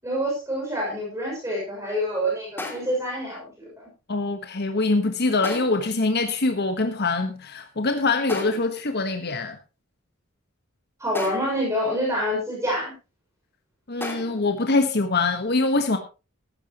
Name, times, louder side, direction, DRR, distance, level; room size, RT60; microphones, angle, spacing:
voice 1, 0.0-3.9 11.0-12.9, equal, 15° right, -3 dB, 6.5 m, -27 dB
sound 1, 2.6-3.1 5.4-5.9 8.3-8.9 11.1-11.7 14.0-14.5, left 2 dB, 10° left, 2.7 m, -35 dB
voice 2, 4.1-9.6 13.9-16.0, left 3 dB, 50° left, 7 dB, 1.3 m, -24 dB
16.0 x 13.0 x 3.0 m, 0.30 s
head